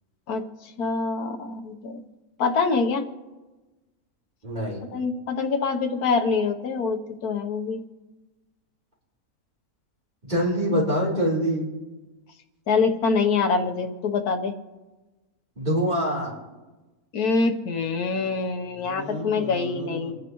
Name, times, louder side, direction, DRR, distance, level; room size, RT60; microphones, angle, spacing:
voice 1, 0.8-1.9 2.4-3.0 4.9-7.8 12.7-14.5 17.1-20.1, left 4 dB, 90° left, 5 dB, 1.5 m, -25 dB
voice 2, 4.4-4.8 10.2-11.7 15.6-16.3 18.8-20.1, equal, 30° right, -5 dB, 3.8 m, -26 dB
28.0 x 10.5 x 3.1 m, 1.2 s
omnidirectional pair, 1.6 m